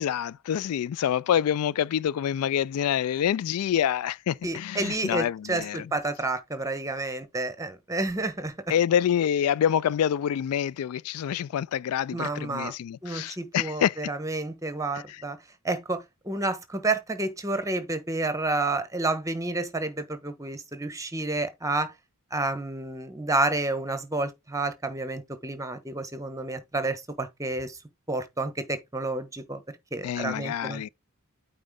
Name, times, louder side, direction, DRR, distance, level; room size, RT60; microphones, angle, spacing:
voice 1, 0.0-5.9 8.7-14.0 14.9-15.2 30.0-30.9, left 9 dB, 75° left, 0.3 m, -27 dB
voice 2, 4.4-8.5 12.1-12.7 13.0-15.4 15.6-21.9 22.3-27.8 28.1-29.6 29.9-30.8, right 2 dB, 15° right, 1.2 m, -30 dB
8.8 x 4.0 x 3.7 m
head